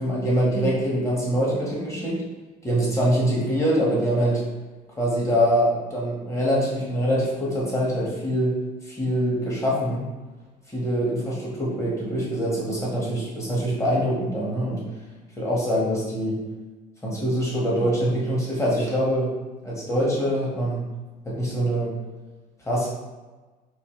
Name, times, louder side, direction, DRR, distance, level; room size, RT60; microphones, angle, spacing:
voice 1, 0.0-2.2 2.6-4.4 5.0-10.0 10.7-14.8 15.4-16.4 17.0-19.3 19.6-20.8 21.2-21.9 22.6-22.9, equal, 15° left, -5 dB, 1.4 m, -24 dB
4.2 x 2.6 x 3.1 m, 1.3 s
cardioid pair, 110°, 17 cm